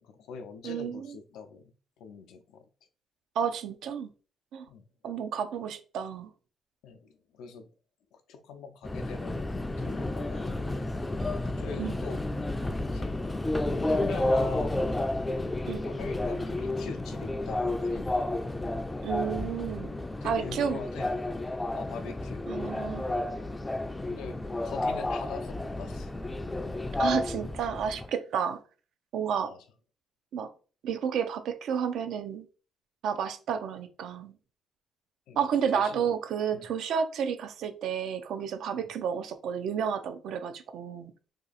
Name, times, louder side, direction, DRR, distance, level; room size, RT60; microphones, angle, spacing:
voice 1, 0.0-1.7 2.0-2.6 4.7-4.9 6.8-7.7 8.1-9.5 9.8-10.7 11.4-12.2 12.9-13.2 13.7-14.8 15.8-18.1 20.2-21.2 21.7-22.4 24.0-24.4 24.6-26.1 29.4-29.6 35.3-36.1 36.5-36.7 38.7-38.9, left 5 dB, 85° left, 0.5 m, -43 dB
voice 2, 0.6-1.1 3.4-4.1 4.5-4.7 5.0-6.3 11.8-12.0 15.7-15.8 19.0-19.9 20.2-20.8 22.5-23.0 27.0-28.6 29.1-29.5 30.3-30.5 30.8-32.5 33.0-34.4 35.4-41.1, right 7 dB, 80° right, 0.5 m, -31 dB
Subway metro underground, 8.8-28.1, left 2 dB, 15° left, 0.4 m, -31 dB
2.7 x 2.4 x 4.0 m
cardioid pair, 90°, 0 cm